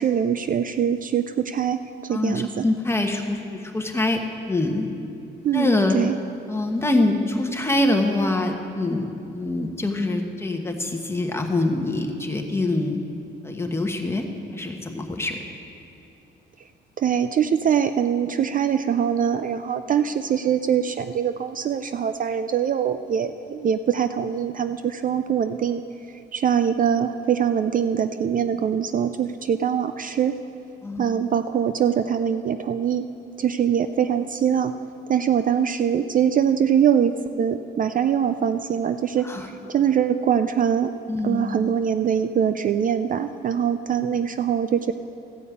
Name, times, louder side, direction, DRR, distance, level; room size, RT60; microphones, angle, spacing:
voice 1, 0.0-2.6 5.4-6.2 17.0-25.8 26.3-30.3 31.0-33.1 33.4-34.7 35.1-39.3 39.7-40.9 41.2-44.9, right 8 dB, 45° right, 10 dB, 0.4 m, -23 dB
voice 2, 2.1-4.2 4.5-4.9 5.5-6.0 6.5-13.0 13.4-14.3 14.5-15.4 30.8-31.0 39.2-39.5 41.1-41.5, left 2 dB, 10° left, 3 dB, 1.3 m, -24 dB
14.5 x 5.3 x 8.5 m, 2.7 s
cardioid pair, 90°, 20 cm